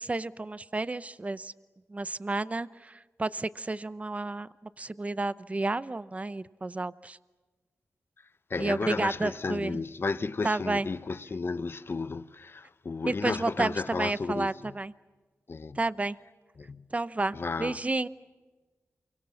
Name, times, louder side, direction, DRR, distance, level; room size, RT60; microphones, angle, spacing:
voice 1, 0.0-1.5 1.9-2.9 3.2-4.5 4.8-7.2 8.6-9.8 10.4-10.9 13.1-14.9 15.8-16.2 16.9-18.1, right 2 dB, 25° right, 0.7 m, -31 dB
voice 2, 8.5-14.8 15.5-15.8 16.6-16.9 17.3-17.8, left 4 dB, 45° left, 0.9 m, -33 dB
28.5 x 24.5 x 7.3 m
wide cardioid pair, 95°, 5 cm